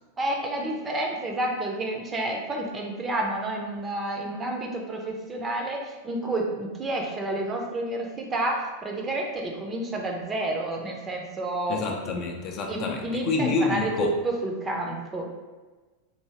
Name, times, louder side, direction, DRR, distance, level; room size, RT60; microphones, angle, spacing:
voice 1, 0.2-12.3 12.7-15.2, right 2 dB, 20° right, 1 dB, 0.6 m, -30 dB
voice 2, 11.7-14.1, left 4 dB, 35° left, 1 dB, 0.5 m, -28 dB
4.7 x 2.7 x 2.9 m, 1.3 s
figure-of-eight pair, 90°, 0 cm